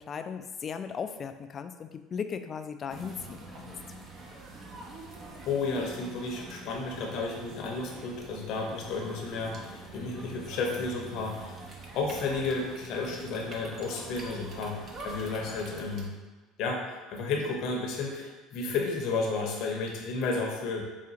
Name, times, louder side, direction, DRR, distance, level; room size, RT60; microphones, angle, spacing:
voice 1, 0.0-3.7, left 6 dB, 40° left, 8 dB, 0.3 m, -37 dB
sound 1, 2.9-16.1, right 2 dB, 45° right, 0.7 m, -45 dB
voice 2, 5.4-11.6 11.9-14.8 15.0-16.1 16.6-20.8, left 3 dB, 65° left, 1 dB, 0.8 m, -32 dB
4.9 x 2.4 x 2.8 m, 1.2 s
hypercardioid pair, 80°, 0 cm